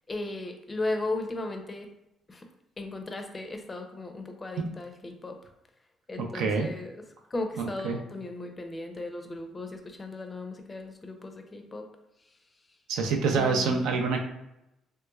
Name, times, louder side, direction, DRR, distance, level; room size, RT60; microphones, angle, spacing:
voice 1, 0.1-1.9 2.3-2.5 2.8-5.4 6.1-7.0 7.3-11.9 13.3-14.0, left 2 dB, 20° left, 5 dB, 0.5 m, -36 dB
voice 2, 6.3-6.7 7.8-8.0 12.9-14.2, right 4 dB, 85° right, 3 dB, 0.5 m, -26 dB
3.2 x 3.0 x 2.3 m, 0.88 s
cardioid pair, 110°, 0 cm